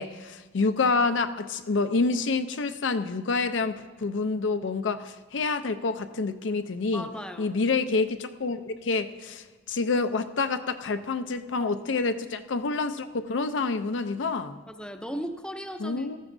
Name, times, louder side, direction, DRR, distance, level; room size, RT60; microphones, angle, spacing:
voice 1, 0.0-7.1 7.4-14.6 15.8-16.2, left 4 dB, 70° left, 9 dB, 0.5 m, -28 dB
voice 2, 6.9-7.5 11.6-12.0 14.7-16.2, equal, 5° left, 6 dB, 0.6 m, -37 dB
18.0 x 13.5 x 2.6 m, 1.3 s
head